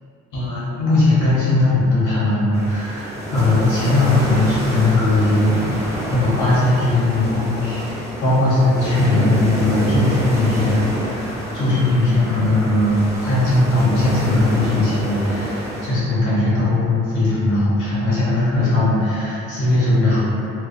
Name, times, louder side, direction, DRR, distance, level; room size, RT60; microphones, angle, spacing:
voice 1, 0.3-5.6 5.9-20.2, left 2 dB, 80° left, -10 dB, 0.9 m, -19 dB
sound 1, 2.5-15.9, right 1 dB, 10° right, 0.7 m, -28 dB
2.2 x 2.2 x 2.5 m, 2.8 s
cardioid pair, 90°, 30 cm